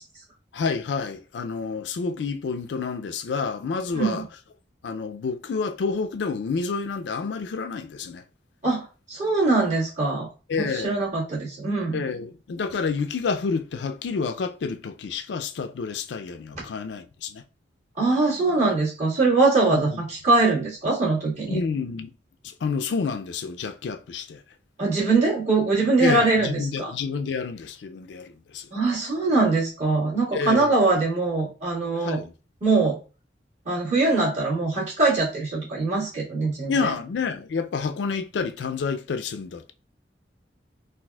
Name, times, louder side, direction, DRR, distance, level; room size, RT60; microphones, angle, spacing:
voice 1, 0.5-4.2 4.8-8.2 10.5-11.1 11.9-17.4 19.7-20.0 21.5-22.1 22.4-24.4 26.0-28.7 30.3-30.7 32.0-32.3 36.7-39.7, left 5 dB, 75° left, 0.4 m, -29 dB
voice 2, 3.9-4.2 8.6-10.3 10.6-12.0 16.5-16.6 18.0-21.6 24.8-26.9 28.7-32.2 32.6-33.0 33.6-36.9, right 3 dB, 40° right, 1.8 m, -22 dB
4.1 x 2.5 x 2.3 m
head